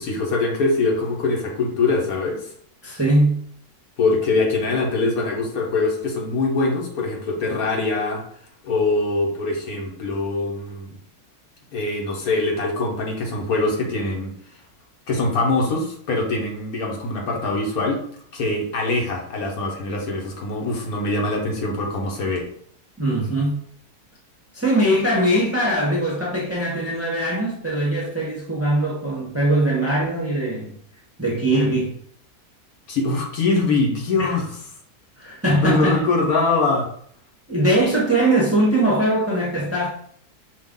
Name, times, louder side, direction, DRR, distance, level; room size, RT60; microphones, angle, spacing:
voice 1, 0.0-2.5 4.0-8.2 8.6-10.9 11.7-14.3 15.1-18.0 18.3-22.4 32.9-34.5 35.5-36.9, left 3 dB, 70° left, 1.4 m, -23 dB
voice 2, 2.8-3.4 23.0-23.6 24.5-30.7 31.2-32.0 34.2-34.3 35.2-36.0 37.5-39.9, right 1 dB, 10° right, 0.7 m, -21 dB
5.4 x 2.4 x 3.6 m
omnidirectional pair, 1.6 m